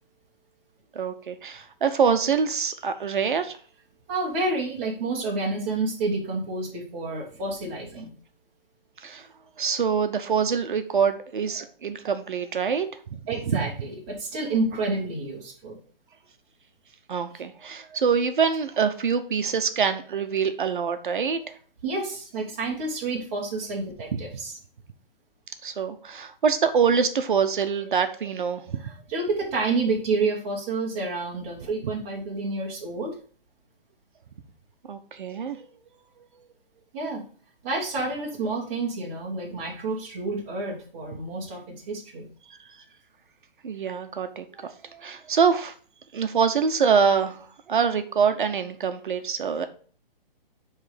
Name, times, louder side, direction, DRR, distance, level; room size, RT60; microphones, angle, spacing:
voice 1, 0.9-3.6 9.0-9.3 9.6-12.9 13.5-13.6 17.1-21.5 24.1-24.2 25.6-28.8 34.9-35.6 43.6-45.7 46.1-47.4 47.7-49.7, right 6 dB, 60° right, 8 dB, 0.8 m, -25 dB
voice 2, 4.1-8.1 13.3-15.8 21.8-24.5 28.8-33.1 36.9-37.2 37.6-41.6 41.9-42.3, right 3 dB, 15° right, -2 dB, 1.0 m, -29 dB
8.6 x 3.3 x 4.8 m, 0.43 s
hypercardioid pair, 175°, 29 cm